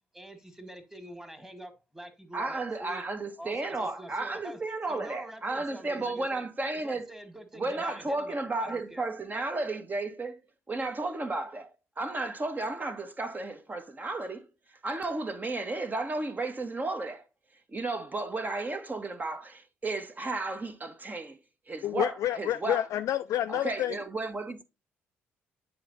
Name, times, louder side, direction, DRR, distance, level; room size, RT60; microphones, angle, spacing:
voice 1, 0.1-3.0 3.4-4.6 4.9-6.4 6.8-9.1, right 1 dB, 10° right, 1.9 m, -46 dB
voice 2, 2.3-7.1 7.5-10.4 10.7-14.5 14.8-17.2 17.7-21.4 21.7-22.8 23.5-24.6, right 2 dB, 30° right, 1.3 m, -33 dB
voice 3, 21.8-24.0, left 12 dB, 60° left, 0.4 m, -29 dB
9.4 x 3.4 x 4.1 m
hypercardioid pair, 50°, 6 cm